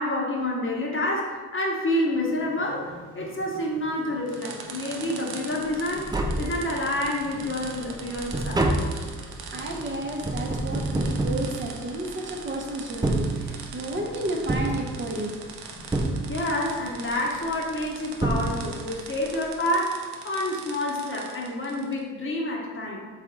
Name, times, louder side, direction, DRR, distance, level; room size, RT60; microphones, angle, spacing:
voice 1, 0.0-6.1 6.4-8.7 16.3-23.1, left 1 dB, 35° left, -2 dB, 1.0 m, -28 dB
sound 1, 2.1-18.7, left 2 dB, 80° left, 1.0 m, -48 dB
sound 2, 4.3-22.0, right 6 dB, 75° right, 0.6 m, -42 dB
Tap, 5.7-5.8 6.0-7.1 7.5-12.3 12.9-13.9 14.5-15.5 15.9-16.8 17.8-17.9 18.2-19.0 19.3-19.4, right 2 dB, 10° right, 0.4 m, -28 dB
voice 2, 9.5-15.3, right 1 dB, 30° right, -1 dB, 0.8 m, -32 dB
3.5 x 3.4 x 3.9 m, 1.4 s
supercardioid pair, 55°, 38 cm